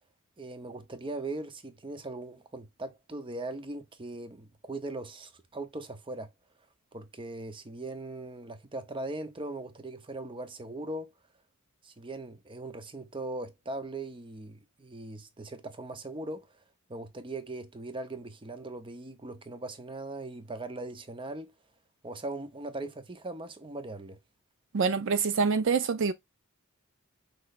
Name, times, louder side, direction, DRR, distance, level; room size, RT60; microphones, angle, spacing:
voice 1, 0.4-6.3 6.9-11.1 11.8-16.5 16.9-21.5 22.0-24.2, right 2 dB, 25° right, 0.8 m, -39 dB
voice 2, 24.7-26.1, right 5 dB, 60° right, 0.5 m, -26 dB
6.1 x 3.3 x 2.5 m
head